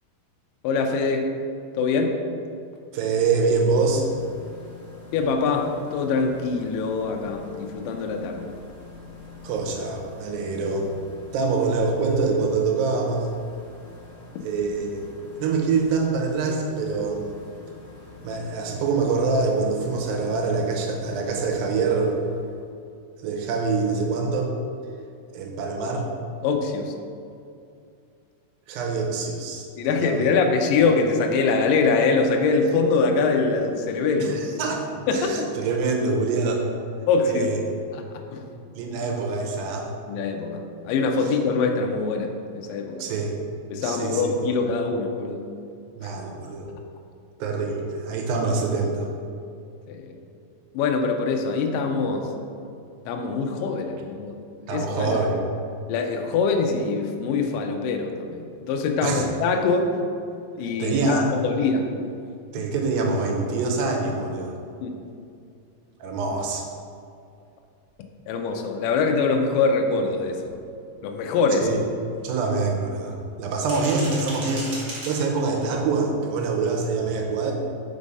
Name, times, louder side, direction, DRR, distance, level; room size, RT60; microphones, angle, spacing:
voice 1, 0.6-1.3 1.7-2.2 5.1-8.5 26.4-26.9 29.8-34.6 35.1-35.5 37.1-37.5 37.9-38.0 38.3-38.5 40.1-42.3 42.6-43.0 43.7-45.4 46.0-46.1 49.9-50.1 50.7-52.3 53.1-54.4 54.7-55.2 55.9-59.9 60.6-61.9 64.8-64.9 68.3-70.5 71.0-71.8, left 4 dB, 80° left, 3 dB, 1.9 m, -23 dB
voice 2, 2.9-4.1 9.4-10.9 11.3-13.3 14.4-15.1 15.4-17.2 18.2-22.2 23.2-24.5 25.3-26.1 28.7-30.3 34.2-34.8 35.1-36.6 37.3-37.6 38.8-39.9 43.0-43.3 43.8-44.3 46.0-46.7 47.4-49.1 54.7-55.5 59.0-59.3 60.8-61.3 62.5-64.6 66.0-66.7 71.6-71.8 72.2-77.5, right 4 dB, 75° right, 1 dB, 2.3 m, -25 dB
sound 1, 3.3-22.7, left 4 dB, 65° left, 1.1 m, -45 dB
sound 2, 67.9-68.0 68.4-68.5 68.9-69.0 69.4-69.6 69.9-70.0 70.4-70.6 71.0-71.1 71.6-72.6 73.4-75.6, right 1 dB, 55° right, 1.4 m, -37 dB
5.3 x 5.0 x 5.3 m, 2.4 s
omnidirectional pair, 4.6 m